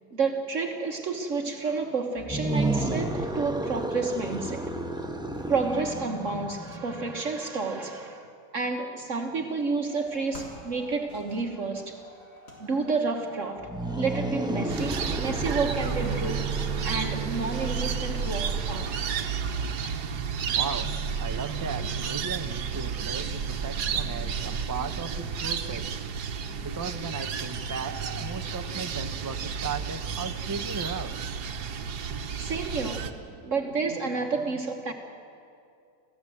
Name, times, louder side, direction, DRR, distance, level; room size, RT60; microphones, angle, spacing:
voice 1, 0.1-4.8 5.5-12.0 12.6-18.9 32.4-34.9, right 4 dB, 55° right, 3 dB, 1.6 m, -30 dB
sound 1, 2.2-7.4 13.6-19.3, right 1 dB, 5° right, 0.9 m, -33 dB
sound 2, 9.9-19.9, left 1 dB, 90° left, 4.3 m, -50 dB
sound 3, 14.7-33.1, right 6 dB, 85° right, 1.6 m, -31 dB
voice 2, 20.4-25.9 26.6-31.1, right 5 dB, 25° right, 8 dB, 0.4 m, -36 dB
27.0 x 15.5 x 7.8 m, 2.5 s
omnidirectional pair, 1.7 m